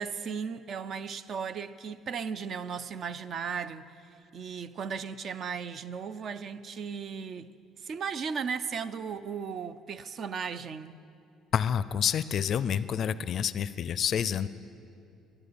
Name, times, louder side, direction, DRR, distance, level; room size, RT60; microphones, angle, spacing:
voice 1, 0.0-3.9 4.3-7.5 7.8-11.0, right 6 dB, 50° right, 0.5 m, -36 dB
voice 2, 11.5-14.5, left 8 dB, 55° left, 0.4 m, -28 dB
12.0 x 10.5 x 8.5 m
cardioid pair, 100°, 0 cm